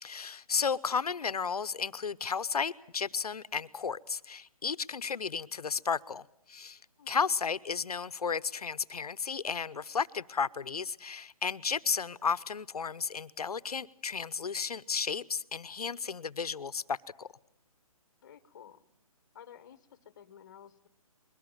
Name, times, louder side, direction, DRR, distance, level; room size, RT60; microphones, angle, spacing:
voice 1, 0.0-6.8 7.1-17.3, left 6 dB, 90° left, 0.9 m, -33 dB
voice 2, 18.2-18.8 19.3-20.9, left 9 dB, 30° left, 1.1 m, -53 dB
22.0 x 18.5 x 8.9 m
hypercardioid pair, 170°, 19 cm